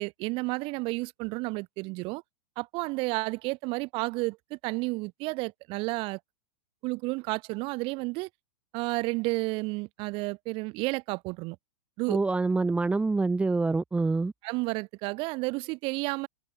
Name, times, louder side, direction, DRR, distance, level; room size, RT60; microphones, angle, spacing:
voice 1, 0.0-2.2 2.6-6.2 6.8-8.3 8.7-11.6 12.0-12.2 14.4-16.3, right 25 dB, 45° right, 1.3 m, -31 dB
voice 2, 12.1-14.3, right 3 dB, 10° right, 0.9 m, -26 dB
hypercardioid pair, 110°, 13 cm